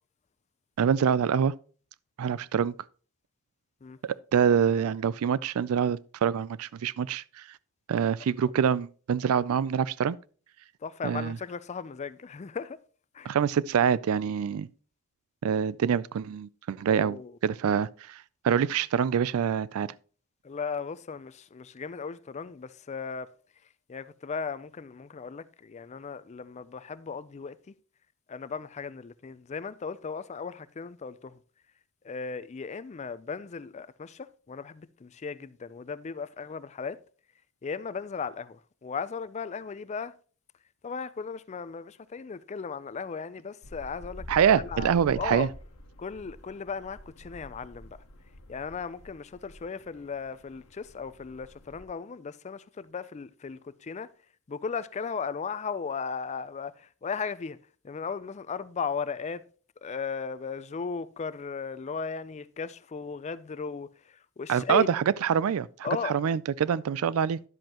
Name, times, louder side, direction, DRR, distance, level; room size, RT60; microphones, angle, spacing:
voice 1, 0.8-1.5 2.2-2.7 4.0-7.2 7.9-10.2 11.0-11.4 13.3-14.7 15.4-18.2 18.4-19.9 44.3-45.5 64.5-67.4, right 7 dB, 75° right, 0.4 m, -25 dB
voice 2, 10.8-12.8 13.1-13.3 16.8-17.3 20.4-23.3 23.9-27.7 28.3-31.4 32.0-37.0 37.6-40.1 40.8-44.3 44.6-45.5 46.0-48.0 48.5-54.1 54.5-57.6 57.8-59.4 59.8-64.9 65.8-66.2, left 5 dB, 30° left, 0.4 m, -36 dB
sound 1, 43.6-51.8, left 1 dB, 80° left, 1.2 m, -47 dB
11.0 x 7.6 x 2.9 m
head